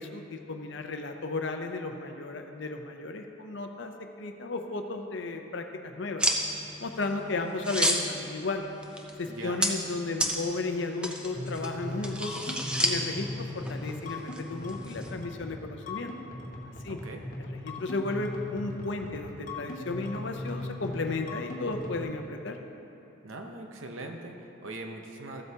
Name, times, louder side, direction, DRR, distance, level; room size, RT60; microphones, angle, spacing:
voice 1, 0.0-3.9 4.2-6.3 6.8-8.6 9.2-12.4 12.8-16.1 16.8-17.0 17.5-22.6, left 3 dB, 60° left, 5 dB, 0.7 m, -34 dB
sound 1, 6.2-15.1, equal, 5° right, 0.5 m, -33 dB
voice 2, 9.2-9.7 16.9-17.2 23.2-25.4, right 2 dB, 75° right, 3 dB, 0.9 m, -41 dB
sound 2, 11.3-22.0, left 2 dB, 40° left, 1.1 m, -39 dB
14.5 x 7.9 x 2.9 m, 2.9 s
head